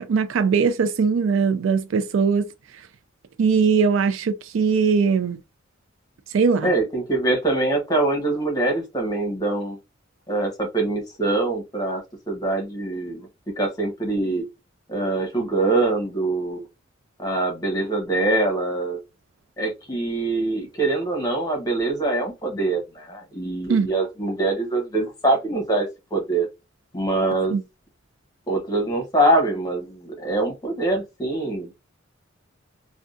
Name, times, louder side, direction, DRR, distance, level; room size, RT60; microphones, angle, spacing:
voice 1, 0.0-2.4 3.4-5.4 6.3-6.7 23.7-23.9 27.5-27.6, right 5 dB, 70° right, 0.4 m, -20 dB
voice 2, 6.6-9.8 10.3-13.3 13.6-14.4 14.9-16.7 17.2-19.0 19.6-26.5 26.9-27.6 28.5-31.7, right 2 dB, 20° left, 1.1 m, -24 dB
3.5 x 2.3 x 2.5 m
head